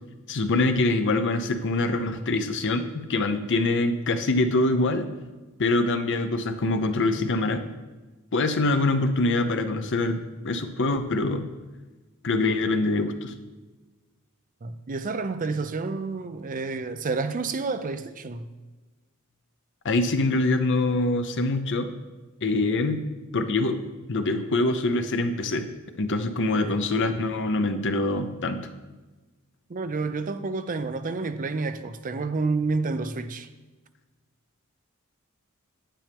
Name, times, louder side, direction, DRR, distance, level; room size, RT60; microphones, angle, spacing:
voice 1, 0.3-5.1 5.6-7.6 8.3-11.4 12.2-13.3 19.8-21.9 22.4-23.0 23.3-23.8 24.1-25.7 26.0-28.6, left 2 dB, 60° left, 0.7 m, -24 dB
voice 2, 14.6-18.5 26.5-26.8 29.7-33.5, right 3 dB, 40° right, 0.5 m, -29 dB
9.2 x 8.6 x 3.5 m
head